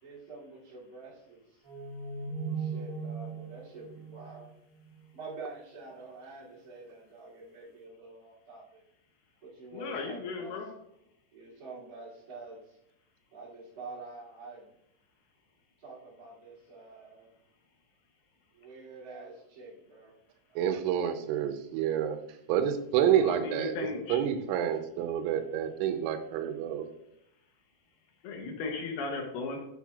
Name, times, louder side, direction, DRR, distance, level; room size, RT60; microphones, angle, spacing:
voice 1, 0.0-1.6 2.4-4.5 5.1-8.8 9.4-10.6 11.3-12.8 13.3-14.7 15.8-17.3 18.5-20.2 20.5-20.6, right 3 dB, 30° right, -8 dB, 1.8 m, -47 dB
sound 1, 1.6-5.1, right 5 dB, 55° right, 2.0 m, -38 dB
voice 2, 9.7-10.7 23.2-24.2 28.2-29.7, left 4 dB, 85° left, 1 dB, 2.3 m, -36 dB
voice 3, 20.6-22.2 22.5-23.8 24.1-26.9, right 9 dB, 85° right, 8 dB, 3.1 m, -28 dB
8.8 x 6.0 x 2.3 m, 0.80 s
omnidirectional pair, 5.6 m